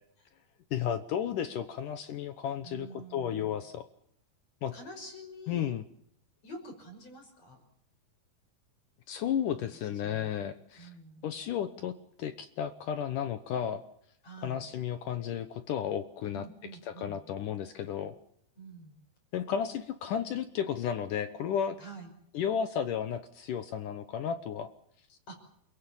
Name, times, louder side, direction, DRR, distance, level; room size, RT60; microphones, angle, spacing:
voice 1, 0.7-3.8 4.6-4.7 5.5-5.8 9.1-10.9 11.2-11.9 12.2-13.8 14.4-16.4 16.9-18.2 19.3-21.8 22.3-24.7, left 8 dB, 70° left, 10 dB, 2.2 m, -33 dB
voice 2, 2.6-3.6 4.7-5.6 6.4-7.6 9.5-9.8 10.0-10.3 10.8-11.4 14.2-14.6 16.3-17.2 18.6-19.0 21.8-22.1 25.3-25.4, right 1 dB, 40° left, 5 dB, 6.7 m, -48 dB
29.0 x 17.0 x 7.2 m, 0.71 s
omnidirectional pair, 4.6 m